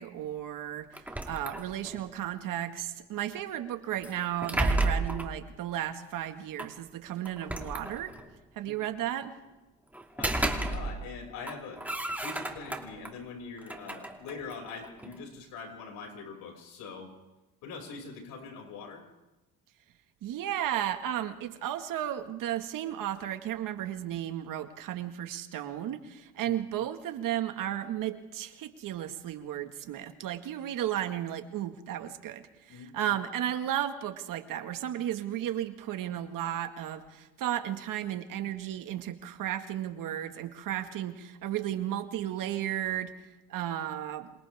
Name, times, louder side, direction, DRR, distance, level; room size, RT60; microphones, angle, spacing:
voice 1, 0.0-8.1 8.6-9.4 20.2-43.1 43.5-44.3, right 11 dB, 70° right, 7 dB, 2.0 m, -34 dB
sound 1, 0.9-2.1 4.0-5.4 6.6-6.7 7.3-8.3 9.9-11.2 11.4-13.1 13.6-15.2, right 2 dB, 5° right, 2.6 m, -32 dB
voice 2, 10.1-11.8 12.2-17.1 17.6-19.1 26.4-26.5 32.7-32.9, left 4 dB, 75° left, 1 dB, 6.6 m, -43 dB
27.5 x 27.0 x 3.7 m, 1.0 s
supercardioid pair, 85°, 34 cm